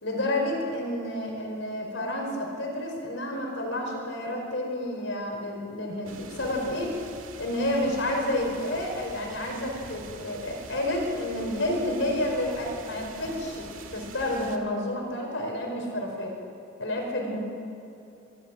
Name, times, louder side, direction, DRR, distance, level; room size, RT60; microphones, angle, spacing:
voice 1, 0.0-6.9 7.4-16.4 16.8-17.4, left 1 dB, 65° left, 1 dB, 4.8 m, -30 dB
sound 1, 6.0-14.6, right 3 dB, 80° right, 1.9 m, -45 dB
24.0 x 14.0 x 7.6 m, 2.8 s
head